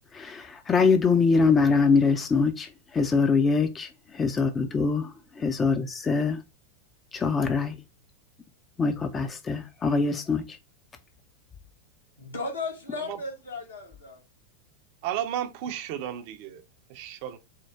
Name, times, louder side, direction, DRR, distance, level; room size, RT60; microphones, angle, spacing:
voice 1, 0.1-6.4 7.1-7.7 8.8-10.6, left 4 dB, 20° left, 0.4 m, -24 dB
voice 2, 12.2-14.2, left 3 dB, 70° left, 1.4 m, -35 dB
voice 3, 15.0-16.6 16.9-17.4, right 10 dB, 45° right, 0.5 m, -33 dB
4.4 x 2.1 x 3.5 m
figure-of-eight pair, 90°, 0 cm